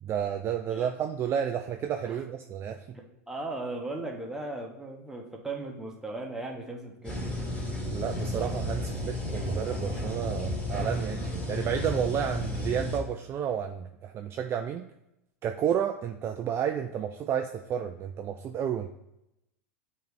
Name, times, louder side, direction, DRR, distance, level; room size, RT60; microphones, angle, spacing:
voice 1, 0.0-3.0 7.9-11.2 11.5-14.9 15.4-18.9, right 9 dB, 35° right, 5 dB, 0.4 m, -31 dB
voice 2, 2.9-7.2, right 2 dB, 5° right, 0 dB, 1.2 m, -37 dB
sound 1, 7.0-13.0, left 1 dB, 15° left, 1.9 m, -33 dB
9.1 x 3.1 x 3.5 m, 0.85 s
hypercardioid pair, 95°, 8 cm